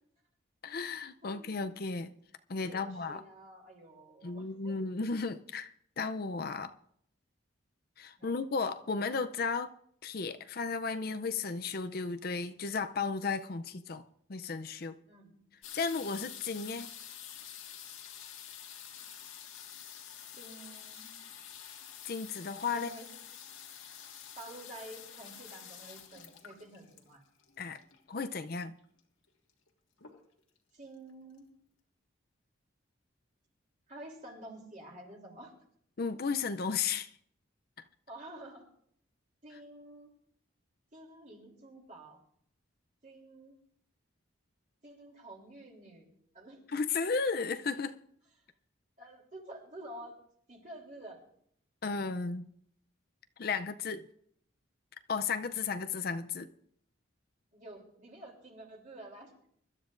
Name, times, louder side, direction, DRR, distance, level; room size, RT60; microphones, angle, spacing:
voice 1, 0.6-2.1 2.5-3.2 4.2-6.7 8.0-9.7 10.0-14.0 14.3-14.9 15.7-16.9 22.0-22.9 27.6-27.8 28.1-28.7 36.0-37.1 46.7-47.9 51.8-52.4 53.4-54.0 55.1-56.5, left 4 dB, 50° left, 0.5 m, -34 dB
voice 2, 1.2-1.7 2.7-4.9 8.2-8.4 15.1-15.4 20.3-21.1 22.7-23.1 24.4-27.2 30.7-31.5 33.9-35.5 38.1-38.6 39.4-40.1 40.9-42.2 43.0-43.6 44.8-46.1 46.3-46.6 48.4-48.5 49.0-50.2 50.5-51.2 57.5-59.3, right 1 dB, 40° right, 3.2 m, -50 dB
sound 1, 15.6-28.2 29.0-29.1 29.3-29.7 30.0-30.6 31.1-31.2 31.4-31.5, left 9 dB, 80° left, 1.8 m, -48 dB
24.5 x 12.5 x 2.6 m
head